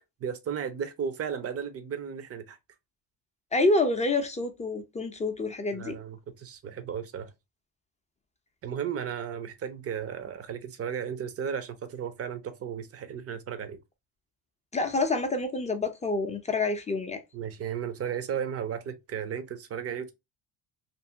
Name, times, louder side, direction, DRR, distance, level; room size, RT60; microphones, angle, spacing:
voice 1, 0.2-2.6 5.7-7.3 8.6-13.8 17.3-20.1, right 8 dB, 35° right, 0.6 m, -34 dB
voice 2, 3.5-6.0 14.7-17.2, left 2 dB, 15° left, 0.5 m, -27 dB
2.6 x 2.6 x 2.6 m
cardioid pair, 110°, 44 cm